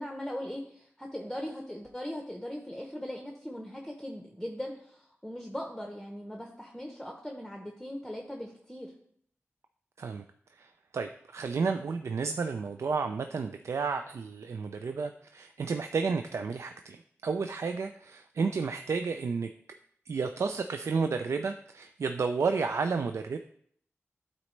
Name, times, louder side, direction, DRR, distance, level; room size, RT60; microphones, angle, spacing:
voice 1, 0.0-8.9, equal, 5° left, 1 dB, 0.8 m, -39 dB
voice 2, 10.6-17.0 17.2-19.5 20.1-23.4, right 5 dB, 75° right, 7 dB, 0.3 m, -31 dB
11.5 x 4.1 x 3.2 m, 0.65 s
wide cardioid pair, 100°, 5 cm